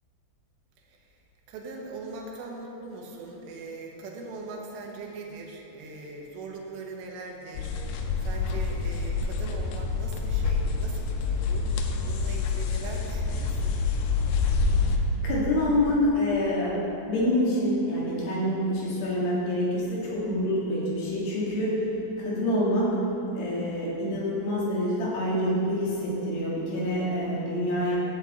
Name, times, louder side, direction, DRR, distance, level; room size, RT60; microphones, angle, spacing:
voice 1, 1.5-11.7 12.0-13.8, right 3 dB, 85° right, -1 dB, 3.2 m, -41 dB
sound 1, 7.6-15.0, left 4 dB, 80° left, 2.5 m, -27 dB
voice 2, 15.2-16.7 17.1-21.9 22.2-23.0 23.4-28.0, left 1 dB, 60° left, -7 dB, 3.7 m, -26 dB
11.5 x 7.2 x 4.2 m, 2.9 s
omnidirectional pair, 5.0 m